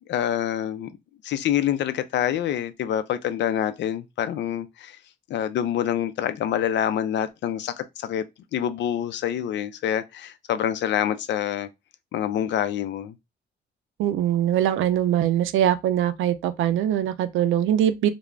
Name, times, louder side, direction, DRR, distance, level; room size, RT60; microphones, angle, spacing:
voice 1, 0.1-0.9 1.2-5.0 5.3-8.2 8.5-11.7 12.1-13.1, left 10 dB, 65° left, 0.4 m, -26 dB
voice 2, 14.0-18.1, right 11 dB, 80° right, 0.4 m, -22 dB
2.4 x 2.1 x 3.2 m
cardioid pair, 90°, 20 cm